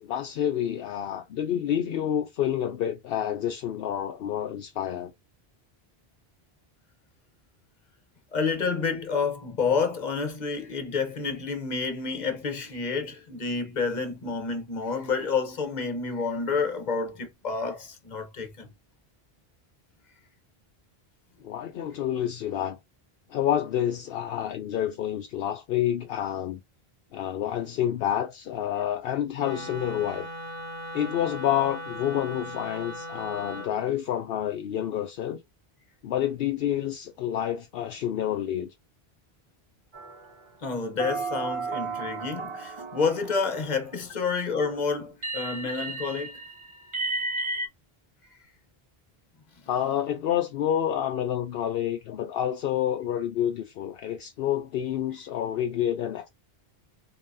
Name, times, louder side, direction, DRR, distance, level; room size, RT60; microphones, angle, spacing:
voice 1, 0.0-5.1 21.4-22.8 23.3-26.6 27.1-30.3 30.9-35.4 36.0-38.7 49.7-56.3, left 10 dB, 70° left, 0.8 m, -28 dB
voice 2, 8.3-18.7 40.6-46.3, left 5 dB, 45° left, 1.1 m, -29 dB
Wind instrument woodwind instrument, 29.4-33.8, equal, 70° right, 2.2 m, -38 dB
sound 1, 39.9-40.5 41.0-44.1 45.2-47.7, right 3 dB, 30° right, 0.8 m, -34 dB
3.9 x 3.7 x 2.7 m
omnidirectional pair, 1.0 m